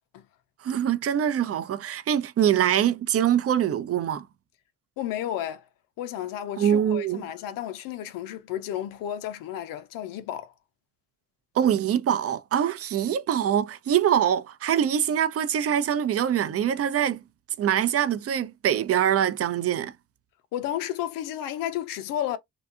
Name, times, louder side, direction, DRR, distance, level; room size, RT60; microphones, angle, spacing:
voice 1, 0.6-4.2 6.6-7.2 11.6-17.2 17.6-19.9, right 9 dB, 45° right, 0.5 m, -24 dB
voice 2, 5.0-5.7 6.0-10.5 20.5-22.4, left 11 dB, 75° left, 0.5 m, -32 dB
2.6 x 2.3 x 2.4 m
hypercardioid pair, 40°, 34 cm